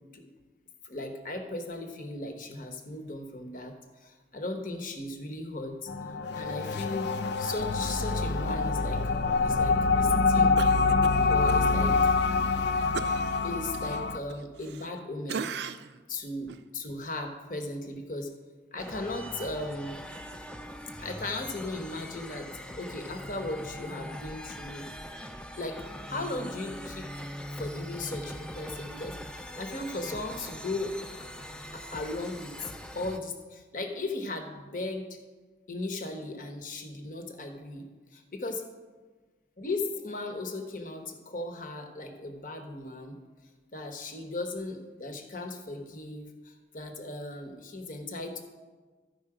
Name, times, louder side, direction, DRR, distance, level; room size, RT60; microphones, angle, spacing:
voice 1, 0.8-3.7 4.0-5.9 6.4-7.1 7.4-9.1 9.4-10.6 11.3-11.9 13.4-15.5 16.1-18.3 18.7-19.9 21.0-22.5 22.8-24.9 25.6-25.8 26.1-29.2 29.6-30.9 31.7-35.1 35.7-37.9 38.1-38.6 39.6-43.2 43.7-48.4, left 2 dB, 45° left, 4 dB, 1.0 m, -37 dB
sound 1, 5.9-14.2, left 4 dB, 70° left, 0.5 m, -25 dB
Cough, 10.6-11.6 12.0-12.1 12.9-15.0 15.3-16.0 16.5-16.6, right 6 dB, 70° right, 0.4 m, -38 dB
sound 2, 18.8-33.2, equal, 5° left, 0.4 m, -42 dB
13.0 x 5.4 x 4.9 m, 1.4 s
head